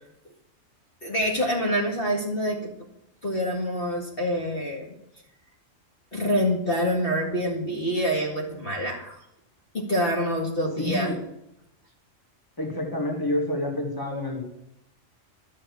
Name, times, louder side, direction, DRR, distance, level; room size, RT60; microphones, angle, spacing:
voice 1, 1.0-2.7 3.2-4.9 6.1-9.2 9.7-11.1, equal, 45° left, -1 dB, 2.2 m, -26 dB
voice 2, 10.8-11.2 12.6-14.4, left 1 dB, 15° left, 1 dB, 2.3 m, -28 dB
12.0 x 6.5 x 7.0 m, 0.83 s
omnidirectional pair, 1.3 m